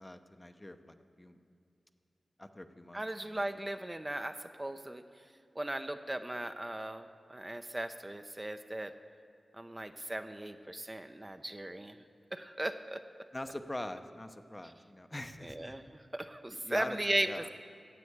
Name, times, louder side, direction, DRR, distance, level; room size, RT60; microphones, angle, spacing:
voice 1, 0.0-1.4 2.4-3.1 3.3-3.5 13.3-15.8 16.5-17.0 17.3-17.5, left 1 dB, 20° left, 8 dB, 0.7 m, -43 dB
voice 2, 2.9-5.0 5.6-8.9 9.5-12.0 12.3-13.0 15.4-17.5, right 1 dB, 20° right, 7 dB, 0.6 m, -37 dB
11.0 x 7.7 x 8.5 m, 2.5 s
cardioid pair, 55°, 0 cm